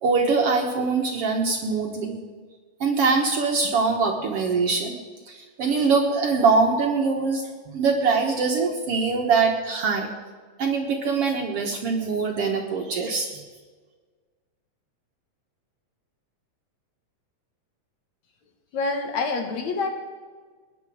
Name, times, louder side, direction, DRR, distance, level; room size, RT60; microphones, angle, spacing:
voice 1, 0.0-2.2 2.8-5.0 5.3-10.1 10.6-13.3, right 4 dB, 60° right, 2 dB, 1.7 m, -23 dB
voice 2, 18.7-19.9, left 4 dB, 65° left, 4 dB, 2.6 m, -26 dB
20.0 x 10.0 x 4.8 m, 1.5 s
omnidirectional pair, 3.7 m